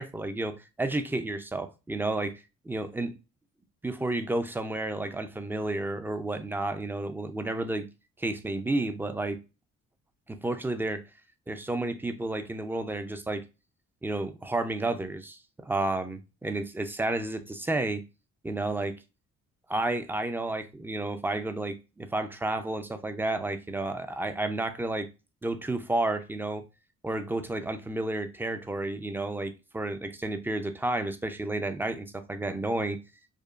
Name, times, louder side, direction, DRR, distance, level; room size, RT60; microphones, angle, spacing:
voice 1, 0.0-2.3 2.6-3.1 3.8-7.9 8.2-9.4 10.3-11.0 11.5-13.4 14.0-18.0 18.4-19.0 19.7-25.1 25.4-26.6 27.0-33.0, right 2 dB, 5° right, 0.4 m, -31 dB
5.1 x 2.2 x 2.4 m
cardioid pair, 90°, 30 cm